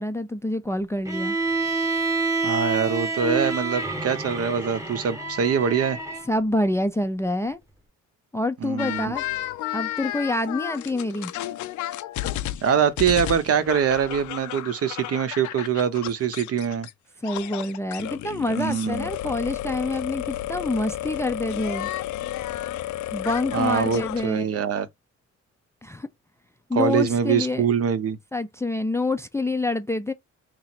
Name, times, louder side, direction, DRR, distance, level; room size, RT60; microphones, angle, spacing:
voice 1, 0.0-1.4 6.3-7.6 8.3-9.2 9.7-11.3 17.2-21.9 23.1-24.6 25.8-26.1 26.7-27.6 28.3-30.1, left 2 dB, 10° left, 0.4 m, -27 dB
Bowed string instrument, 1.0-6.3, right 3 dB, 10° right, 1.0 m, -27 dB
voice 2, 2.4-6.0 8.6-9.1 12.6-16.9 18.6-19.1 23.5-24.9 26.7-28.2, right 7 dB, 50° right, 0.7 m, -24 dB
sound 1, 8.8-16.9 17.2-24.3, left 13 dB, 75° left, 0.5 m, -32 dB
3.0 x 2.5 x 4.2 m
cardioid pair, 90°, 30 cm